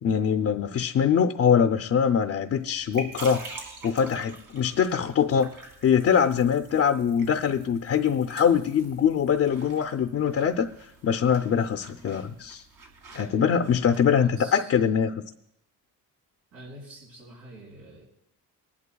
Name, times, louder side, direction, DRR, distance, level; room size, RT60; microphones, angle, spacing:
voice 1, 0.0-3.5 3.8-5.5 5.8-10.7 11.0-12.6 13.1-15.1, left 7 dB, 40° left, 6 dB, 0.5 m, -23 dB
sound 1, 2.5-14.1, right 3 dB, 65° right, 3.0 m, -46 dB
voice 2, 14.1-14.7 16.5-18.0, right 1 dB, 80° right, -5 dB, 5.1 m, -46 dB
21.0 x 11.5 x 2.3 m, 0.78 s
cardioid pair, 130°, 37 cm